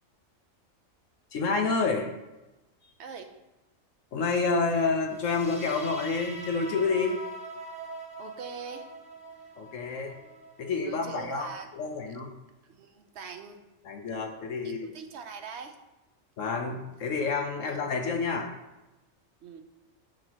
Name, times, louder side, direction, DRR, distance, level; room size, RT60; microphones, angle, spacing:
voice 1, 1.3-2.1 4.1-7.2 9.6-10.2 10.6-11.5 11.7-12.3 13.8-14.9 16.4-18.5, left 4 dB, 70° left, 3 dB, 1.2 m, -29 dB
voice 2, 3.0-3.3 8.2-8.9 10.8-11.7 12.1-12.2 12.6-13.6 14.6-15.8 17.6-17.8 19.4-19.6, right 6 dB, 60° right, 6 dB, 0.9 m, -42 dB
sound 1, 5.1-12.1, right 1 dB, 5° right, 0.6 m, -44 dB
10.5 x 4.5 x 3.0 m, 1.0 s
omnidirectional pair, 1.4 m